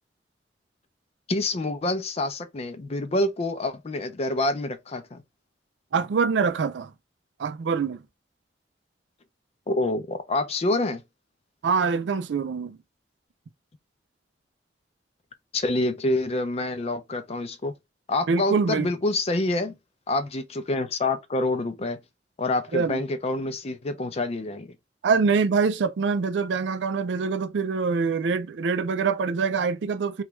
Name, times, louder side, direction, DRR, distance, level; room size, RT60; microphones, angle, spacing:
voice 1, 1.3-5.2 9.7-11.0 15.5-17.7 18.1-19.7 20.1-22.0 22.4-24.7, left 2 dB, 35° left, 0.5 m, -27 dB
voice 2, 5.9-6.9 7.4-8.0 11.6-12.8 18.3-18.9 22.7-23.0 25.0-30.2, right 5 dB, 85° right, 0.4 m, -24 dB
3.0 x 2.3 x 3.1 m
head